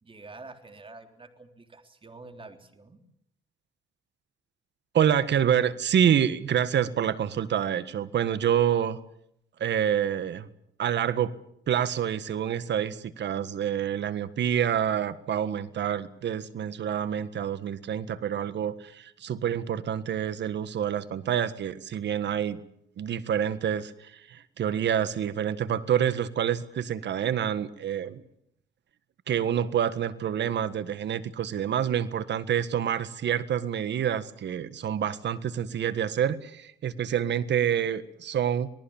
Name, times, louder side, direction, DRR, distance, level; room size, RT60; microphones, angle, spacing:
voice 1, 0.0-3.0, right 3 dB, 25° right, 6 dB, 3.5 m, -47 dB
voice 2, 4.9-9.0 9.6-10.5 10.8-11.3 11.7-22.6 23.0-28.2 29.3-38.7, right 9 dB, 60° right, 14 dB, 1.6 m, -27 dB
27.0 x 19.0 x 7.3 m, 0.73 s
cardioid pair, 90°, 20 cm